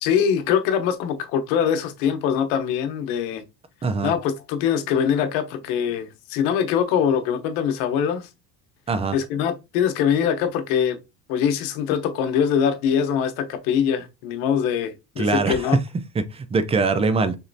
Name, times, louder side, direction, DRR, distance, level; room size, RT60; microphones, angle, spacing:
voice 1, 0.0-3.4 4.0-8.3 9.1-11.0 11.3-15.8, left 8 dB, 90° left, 0.9 m, -23 dB
voice 2, 3.8-4.1 8.9-9.1 15.2-15.6 16.3-17.4, right 4 dB, 15° right, 0.4 m, -22 dB
4.2 x 3.0 x 2.6 m
cardioid pair, 120°, 43 cm